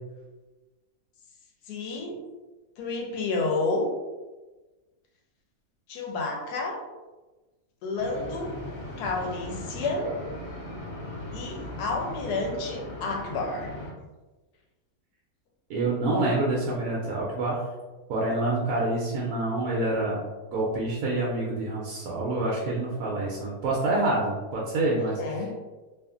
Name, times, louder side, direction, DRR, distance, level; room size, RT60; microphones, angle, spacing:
voice 1, 1.7-2.2 2.8-3.9 5.9-6.8 7.8-8.5 9.0-10.1 11.3-13.7 25.0-25.5, left 3 dB, 80° left, 1 dB, 1.1 m, -30 dB
sound 1, 8.0-13.9, left 1 dB, 55° left, 0.9 m, -38 dB
voice 2, 15.7-17.6 18.1-20.2 20.5-25.2, right 2 dB, 75° right, -4 dB, 1.0 m, -27 dB
2.7 x 2.5 x 2.4 m, 1.2 s
omnidirectional pair, 1.7 m